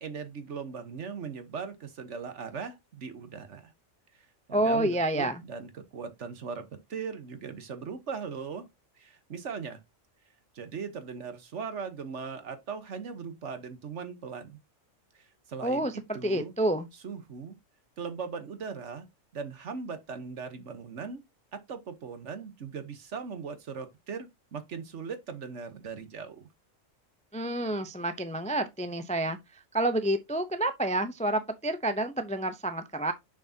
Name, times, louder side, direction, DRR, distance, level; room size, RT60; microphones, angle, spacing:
voice 1, 0.0-3.7 4.1-8.7 9.0-9.8 10.5-14.6 15.1-16.5 17.0-17.6 18.0-19.1 19.3-21.2 21.5-26.5, right 5 dB, 65° right, 1.5 m, -39 dB
voice 2, 4.5-5.4 15.6-16.9 27.3-33.1, right 1 dB, 10° left, 0.4 m, -29 dB
6.4 x 6.4 x 2.8 m
omnidirectional pair, 1.3 m